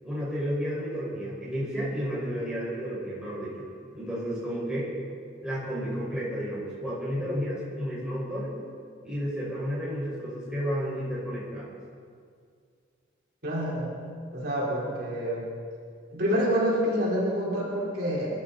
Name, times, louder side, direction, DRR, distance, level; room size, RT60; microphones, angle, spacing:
voice 1, 0.0-3.6 3.9-4.9 5.4-8.5 9.0-11.7, equal, 5° right, -7 dB, 5.4 m, -32 dB
voice 2, 13.4-13.9 14.3-15.4 16.1-18.4, equal, 55° right, -6 dB, 4.3 m, -27 dB
25.5 x 13.0 x 4.2 m, 2.2 s
head